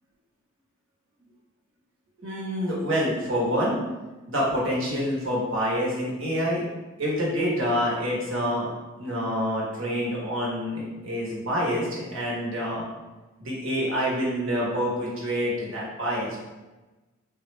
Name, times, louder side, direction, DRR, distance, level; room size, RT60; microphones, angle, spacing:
voice 1, 2.2-3.7 4.3-6.7 7.0-8.7 9.0-12.9 13.4-16.4, equal, 70° right, -4 dB, 1.1 m, -27 dB
3.6 x 2.3 x 3.1 m, 1.1 s
head